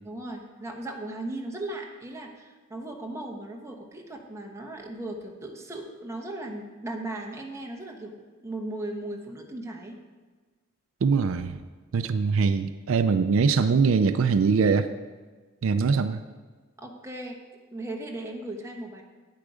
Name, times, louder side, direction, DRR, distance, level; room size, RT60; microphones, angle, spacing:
voice 1, 0.0-10.0 16.8-17.4 17.7-19.0, right 1 dB, 15° right, 1 dB, 1.1 m, -37 dB
voice 2, 11.0-11.6 11.9-14.9 15.6-16.2, right 5 dB, 70° right, 10 dB, 0.4 m, -22 dB
9.3 x 8.4 x 5.0 m, 1.4 s
head